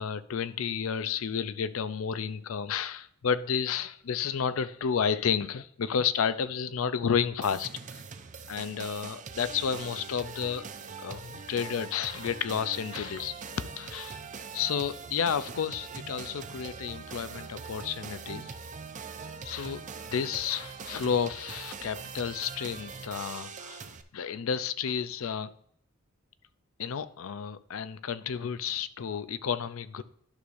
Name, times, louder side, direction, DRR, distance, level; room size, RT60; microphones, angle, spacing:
voice 1, 0.0-8.0 8.4-10.7 11.0-13.3 13.8-14.2 14.5-18.5 19.4-19.8 20.1-23.9 24.1-25.5 26.8-30.0, left 7 dB, 85° left, 0.5 m, -31 dB
sound 1, 7.4-24.0, right 5 dB, 40° right, 0.5 m, -42 dB
11.5 x 6.4 x 2.6 m
head